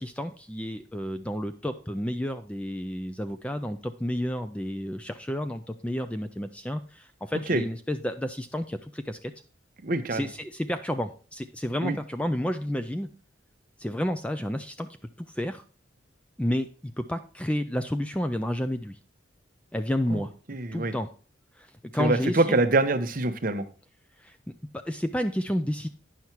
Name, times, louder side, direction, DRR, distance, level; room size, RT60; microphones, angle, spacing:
voice 1, 0.0-9.3 10.1-13.1 13.8-14.9 15.2-15.6 16.4-19.0 19.7-20.3 20.7-21.1 21.6-22.6 24.2-24.4 24.8-25.9, equal, 5° left, 9 dB, 0.3 m, -31 dB
voice 2, 9.8-10.3 11.8-12.0 20.1-20.9 22.0-23.6, right 2 dB, 45° right, 9 dB, 0.8 m, -25 dB
9.5 x 5.8 x 4.4 m, 0.39 s
head